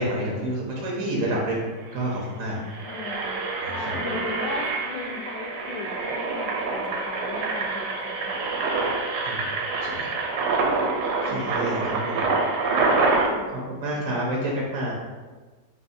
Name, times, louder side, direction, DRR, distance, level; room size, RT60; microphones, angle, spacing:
voice 1, 0.0-1.6 1.9-2.6 3.6-3.9 9.2-9.5 9.8-10.1 11.0-12.3 13.5-14.9, right 1 dB, 60° right, -3 dB, 1.0 m, -29 dB
Engine, 1.9-2.1 2.6-13.3, right 3 dB, 75° right, 1.1 m, -26 dB
voice 2, 2.7-8.7 11.3-11.8 13.4-14.4, left 3 dB, 80° left, 1 dB, 1.2 m, -38 dB
3.5 x 2.7 x 4.0 m, 1.3 s
omnidirectional pair, 1.9 m